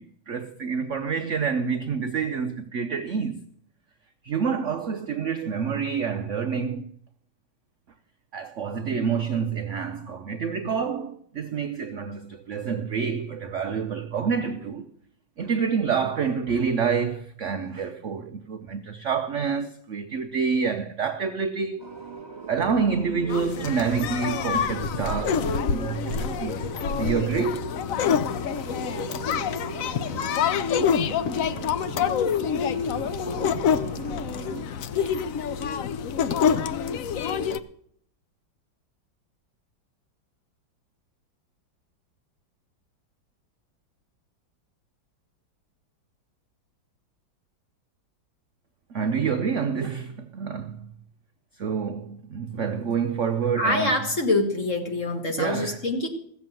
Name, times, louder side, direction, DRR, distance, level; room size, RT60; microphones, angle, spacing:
voice 1, 0.0-3.4 4.2-6.9 8.3-14.9 15.4-21.8 22.5-25.4 25.7-26.6 27.0-27.7 48.9-50.9 51.6-54.0 55.4-55.8, right 6 dB, 65° right, 0.7 m, -27 dB
sound 1, 21.8-34.6, right 6 dB, 20° right, 1.6 m, -39 dB
sound 2, 23.3-37.6, left 7 dB, 75° left, 0.7 m, -26 dB
voice 2, 53.6-56.1, left 2 dB, 40° left, 2.0 m, -25 dB
16.0 x 7.1 x 7.6 m
omnidirectional pair, 2.1 m